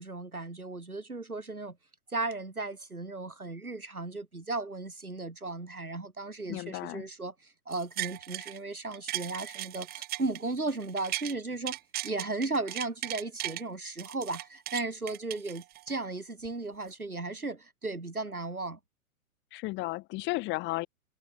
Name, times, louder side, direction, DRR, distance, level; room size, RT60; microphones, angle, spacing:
voice 1, 0.0-1.8 2.1-11.8 12.0-18.8, right 3 dB, 80° right, 7.6 m, -36 dB
voice 2, 6.5-7.0 19.5-20.9, left 21 dB, 25° left, 2.5 m, -33 dB
sound 1, 7.7-8.6 8.9-11.3 11.7-13.6 14.0-16.0 16.4-16.5, right 16 dB, 20° right, 2.1 m, -37 dB
figure-of-eight pair, 110°, 43 cm